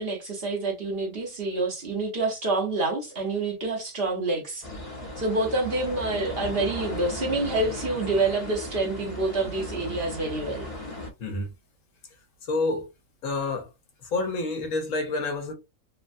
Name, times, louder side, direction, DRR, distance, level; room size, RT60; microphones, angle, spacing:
voice 1, 0.0-4.6 5.2-10.7, right 2 dB, 50° right, 1.1 m, -27 dB
sound 1, 4.6-11.1, left 1 dB, 30° left, 0.8 m, -36 dB
voice 2, 11.2-11.5 12.4-12.9 13.2-13.7 14.0-15.5, left 3 dB, 70° left, 1.1 m, -28 dB
3.3 x 2.2 x 2.5 m
omnidirectional pair, 1.4 m